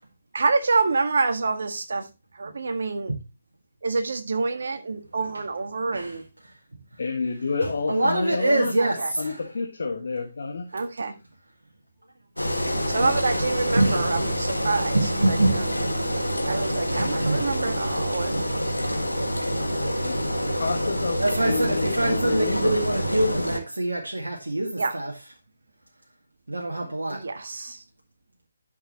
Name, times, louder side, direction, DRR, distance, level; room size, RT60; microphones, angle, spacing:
voice 1, 0.3-2.1 2.3-3.1 3.8-6.2 8.8-9.1 10.7-11.1 12.9-15.7 16.4-18.7 24.8-25.0 27.1-27.8, right 4 dB, 60° right, 1.6 m, -27 dB
voice 2, 7.0-8.7 9.2-10.6 13.0-13.1 20.0-20.2 20.5-21.2 21.4-22.8, left 4 dB, 60° left, 1.5 m, -29 dB
voice 3, 7.6-9.5 13.8-14.2 14.9-15.7 16.9-17.4 18.3-18.4 21.2-25.1 26.5-27.2, right 1 dB, 75° right, 1.8 m, -25 dB
Engine, 12.4-23.6, equal, 85° left, 1.7 m, -27 dB
11.0 x 6.7 x 2.9 m
figure-of-eight pair, 145°, 0 cm